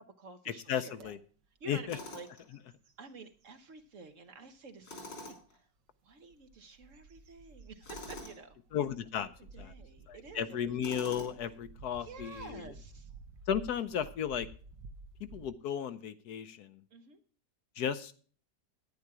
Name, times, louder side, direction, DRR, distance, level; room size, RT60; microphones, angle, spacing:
voice 1, 0.2-1.1 1.6-2.3 3.0-5.7 6.0-8.6 9.2-9.3 9.5-11.0 12.0-13.1 16.9-17.2, right 4 dB, 55° right, 8 dB, 1.1 m, -50 dB
voice 2, 0.7-1.2 1.7-2.0 8.7-9.3 9.6-9.7 10.1-12.6 13.5-14.5 15.3-16.8 17.8-18.1, left 8 dB, 70° left, 12 dB, 1.1 m, -34 dB
sound 1, 1.0-1.1 1.6-1.9 2.2-3.7 4.3-4.4 6.1-15.5, right 3 dB, 80° right, 1.7 m, -53 dB
Tools, 1.9-2.5 4.8-5.6 7.8-8.4 10.8-11.5, left 2 dB, 90° left, 4.0 m, -45 dB
10.5 x 9.9 x 4.7 m, 0.42 s
omnidirectional pair, 1.9 m